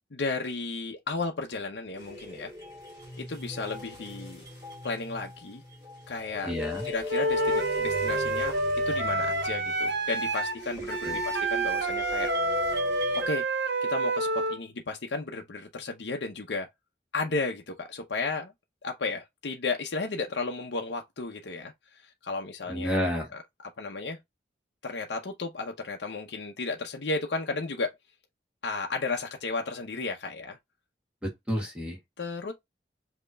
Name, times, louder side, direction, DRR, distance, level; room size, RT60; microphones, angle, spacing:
voice 1, 0.1-2.5 3.2-4.4 4.8-5.6 6.1-6.5 6.9-8.5 8.9-12.3 13.3-13.4 13.8-16.7 17.1-18.5 18.8-21.7 22.0-23.0 23.8-24.2 24.8-27.9 28.6-30.6 32.2-32.5, left 3 dB, 80° left, 0.7 m, -33 dB
sound 1, 2.0-13.3, left 1 dB, 25° right, 2.4 m, -39 dB
voice 2, 6.4-6.9 11.0-11.2 22.7-23.3 31.2-32.0, equal, 5° right, 1.2 m, -30 dB
Wind instrument woodwind instrument, 7.1-14.6, right 2 dB, 85° right, 0.9 m, -28 dB
5.3 x 2.9 x 2.2 m
head